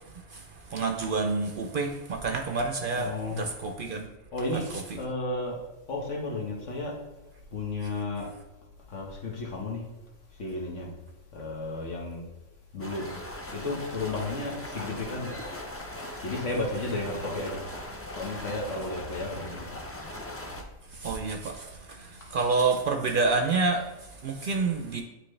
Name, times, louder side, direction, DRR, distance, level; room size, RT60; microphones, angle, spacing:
voice 1, 0.0-4.1 4.7-4.8 20.9-25.0, right 4 dB, 55° right, 4 dB, 0.7 m, -29 dB
voice 2, 3.0-3.5 4.3-4.7 5.0-5.6 5.9-7.0 7.5-8.3 8.9-9.8 10.4-10.9 11.3-12.2 12.7-13.1 13.5-15.4 16.2-17.6 18.2-19.6, left 2 dB, 75° left, -1 dB, 1.6 m, -33 dB
sound 1, 12.8-20.6, left 1 dB, 15° left, 0.5 m, -39 dB
9.5 x 3.3 x 3.2 m, 1.0 s
omnidirectional pair, 1.3 m